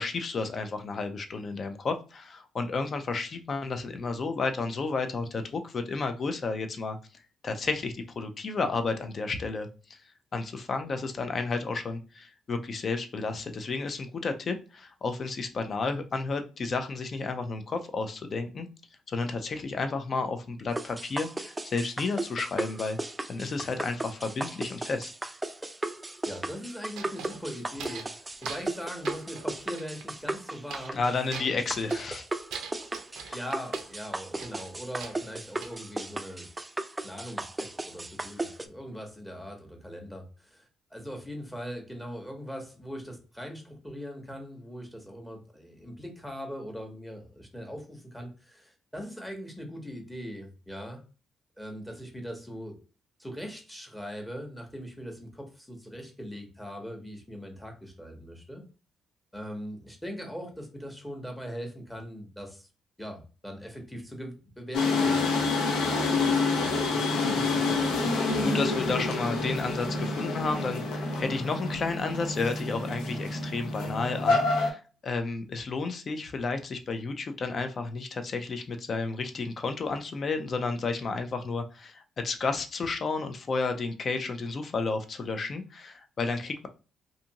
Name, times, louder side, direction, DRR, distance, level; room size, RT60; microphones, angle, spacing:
voice 1, 0.0-7.0 7.4-10.0 10.3-18.7 19.1-25.1 30.9-32.2 33.3-33.4 68.4-86.7, left 4 dB, 45° left, 7 dB, 0.5 m, -32 dB
sound 1, 20.8-38.7, right 2 dB, 15° right, 0.3 m, -36 dB
voice 2, 26.2-31.1 33.3-36.5 37.0-51.0 51.6-52.8 53.2-58.6 59.3-62.7 63.0-68.5, equal, 5° left, 2 dB, 0.9 m, -41 dB
sound 2, 26.9-28.2 28.4-28.8 29.0-30.1 30.7-31.0 31.3-32.1 32.5-33.9 34.4-35.8, right 6 dB, 80° right, 0.4 m, -43 dB
sound 3, 64.7-74.7, left 3 dB, 90° left, 0.6 m, -27 dB
2.6 x 2.5 x 2.8 m, 0.35 s
cardioid pair, 90°, 0 cm